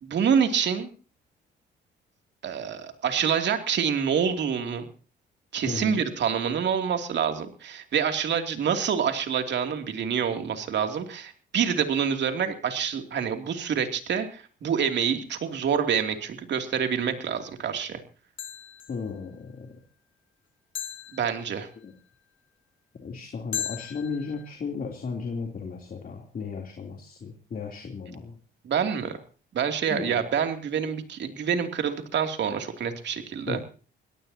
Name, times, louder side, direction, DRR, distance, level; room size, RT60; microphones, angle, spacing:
voice 1, 0.0-0.9 2.4-4.9 5.5-18.0 21.1-21.7 28.6-29.2 29.5-33.6, right 7 dB, 65° right, 6 dB, 2.9 m, -27 dB
voice 2, 5.7-6.0 18.9-19.7 21.8-21.9 23.0-28.4 29.9-30.2 33.5-33.6, left 5 dB, 45° left, 2 dB, 3.3 m, -35 dB
sound 1, 17.2-17.3 18.4-19.1 20.8-21.8 23.5-24.5, left 10 dB, 75° left, 2.7 m, -37 dB
24.0 x 17.5 x 2.9 m, 0.36 s
cardioid pair, 90°, 20 cm